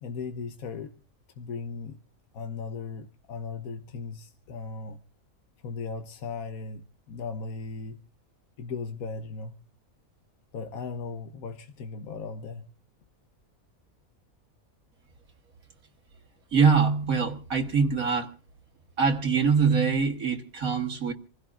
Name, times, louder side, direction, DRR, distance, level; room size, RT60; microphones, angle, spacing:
voice 1, 0.0-0.9 1.4-2.0 2.3-5.0 5.6-8.0 8.6-9.6 10.5-12.6, left 4 dB, 85° left, 1.4 m, -37 dB
voice 2, 16.5-18.3 19.0-21.1, right 5 dB, 80° right, 2.0 m, -23 dB
27.0 x 16.0 x 2.5 m
omnidirectional pair, 1.5 m